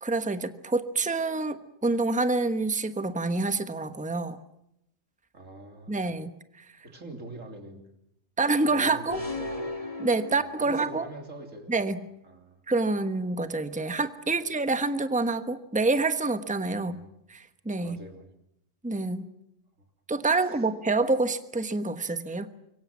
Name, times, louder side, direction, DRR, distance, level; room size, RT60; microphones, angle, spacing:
voice 1, 0.0-4.4 5.9-6.3 8.4-9.2 10.0-11.1 11.7-12.0 12.7-17.0 17.3-18.0 18.8-19.3 20.1-22.5, right 3 dB, 5° right, 10 dB, 1.1 m, -27 dB
voice 2, 5.3-6.0 6.8-7.8 8.4-9.7 10.3-11.9 12.2-12.6 16.7-17.1 17.8-18.3 20.4-20.7, right 2 dB, 90° right, 5 dB, 3.6 m, -44 dB
sound 1, 9.1-11.1, left 2 dB, 30° left, 2.1 m, -36 dB
25.5 x 23.0 x 7.3 m, 0.79 s
omnidirectional pair, 1.3 m